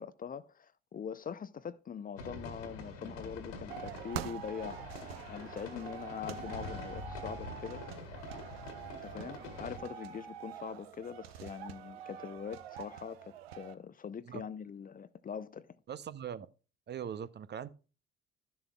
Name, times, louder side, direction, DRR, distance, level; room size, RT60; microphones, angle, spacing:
voice 1, 0.0-7.8 9.0-15.7, left 7 dB, 30° left, 0.6 m, -43 dB
sound 1, 2.2-9.8, left 3 dB, 70° left, 2.1 m, -45 dB
sound 2, 3.7-13.7, right 10 dB, 80° right, 0.7 m, -46 dB
voice 2, 15.9-16.5 16.9-17.7, right 8 dB, 35° right, 0.7 m, -41 dB
12.5 x 7.0 x 2.3 m
figure-of-eight pair, 55°, 30 cm